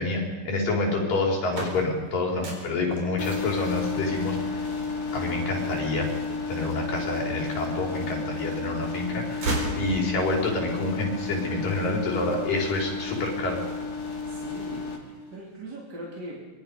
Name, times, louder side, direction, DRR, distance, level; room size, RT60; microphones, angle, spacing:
voice 1, 0.0-4.6 5.1-6.1 6.5-13.6, left 2 dB, 75° left, -1 dB, 5.8 m, -28 dB
sound 1, 1.2-7.2 7.7-8.6 8.9-10.5, right 2 dB, 60° right, 5.8 m, -36 dB
sound 2, 3.2-15.0, left 4 dB, 30° left, 2.7 m, -32 dB
voice 2, 14.3-16.5, right 1 dB, 30° right, -4 dB, 3.6 m, -40 dB
26.5 x 23.5 x 5.3 m, 1.2 s
omnidirectional pair, 3.9 m